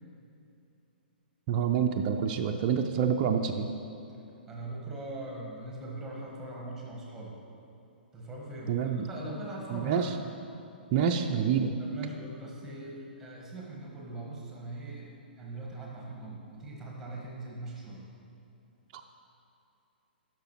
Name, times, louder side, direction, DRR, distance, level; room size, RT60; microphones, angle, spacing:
voice 1, 1.5-3.7 8.7-9.1 9.7-10.1 10.9-11.7 18.9-19.0, right 7 dB, 35° right, 4 dB, 0.4 m, -27 dB
voice 2, 4.5-7.3 8.1-10.1 11.8-18.0, right 2 dB, 10° right, -2 dB, 1.4 m, -41 dB
11.5 x 6.0 x 3.0 m, 2.7 s
figure-of-eight pair, 115°, 5 cm